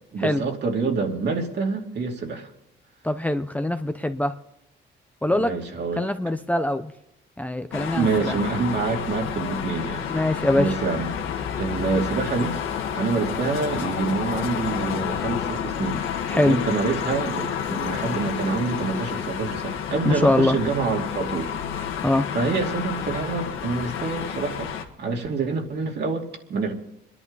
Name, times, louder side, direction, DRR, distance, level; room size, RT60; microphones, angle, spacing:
voice 1, 0.1-2.5 5.3-6.1 7.9-10.0 10.5-11.2 11.6-12.6 12.9-16.0 16.3-21.5 22.3-24.7 25.0-26.7, right 4 dB, 60° right, 1 dB, 2.7 m, -26 dB
voice 2, 3.0-4.3 5.2-5.5 6.0-6.9 7.4-8.4 10.1-10.7 16.3-16.6 20.0-20.6 22.0-22.3, left 1 dB, 5° left, 9 dB, 0.7 m, -23 dB
sound 1, 7.7-24.8, left 8 dB, 85° left, 1.5 m, -30 dB
27.0 x 11.0 x 4.0 m, 0.83 s
cardioid pair, 90°, 20 cm